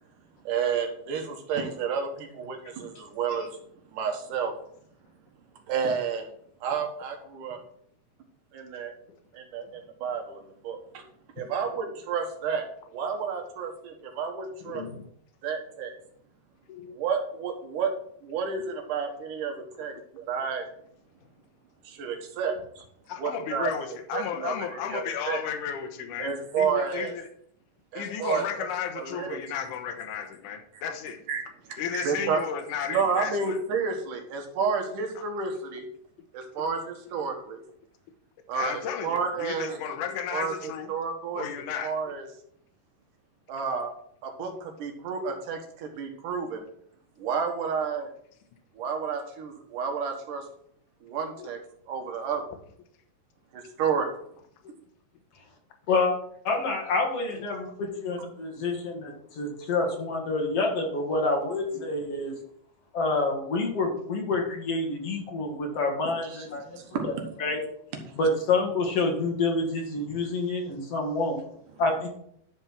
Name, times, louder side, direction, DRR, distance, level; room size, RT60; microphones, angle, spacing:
voice 1, 0.5-3.5 3.9-4.5 5.7-6.3 6.6-7.6 8.5-8.9 9.3-10.8 11.4-12.7 12.9-14.8 15.4-15.9 17.0-17.9 18.2-19.9 20.3-20.7 21.9-22.6 23.2-23.7 24.1-25.4 26.2-27.1 27.9-29.4 31.3-31.4 31.7-32.4 32.9-35.8 36.3-37.6 38.5-39.8 40.3-41.5 41.8-42.3 43.5-43.9 44.2-46.6 47.2-48.1 48.8-50.4 51.0-51.6 51.9-52.4 53.5-54.1 66.2-66.5 66.8-67.3 67.9-68.1, right 6 dB, 70° right, 4 dB, 2.8 m, -30 dB
voice 2, 14.6-15.0 16.7-17.0 23.1-27.3 27.9-31.2 31.8-33.6 35.2-35.3 38.5-40.9 41.3-41.9 44.4-44.6 51.4-51.5 54.6-54.8 59.9-60.0, left 8 dB, 70° left, 4 dB, 2.4 m, -34 dB
voice 3, 56.4-62.3 62.9-66.6 67.4-67.6 68.2-71.4 71.8-72.1, left 3 dB, 50° left, 1 dB, 2.5 m, -27 dB
11.5 x 4.4 x 6.1 m, 0.66 s
omnidirectional pair, 3.9 m